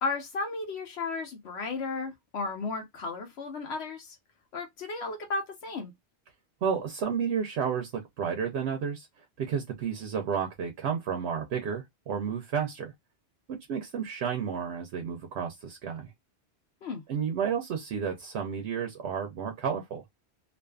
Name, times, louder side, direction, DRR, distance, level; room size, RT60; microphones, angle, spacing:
voice 1, 0.0-4.2 4.5-5.9 16.8-17.0, left 3 dB, 75° left, 0.9 m, -34 dB
voice 2, 6.6-9.1 9.4-12.9 13.5-16.1 17.1-20.0, right 7 dB, 80° right, 0.9 m, -31 dB
2.5 x 2.4 x 2.2 m
omnidirectional pair, 1.1 m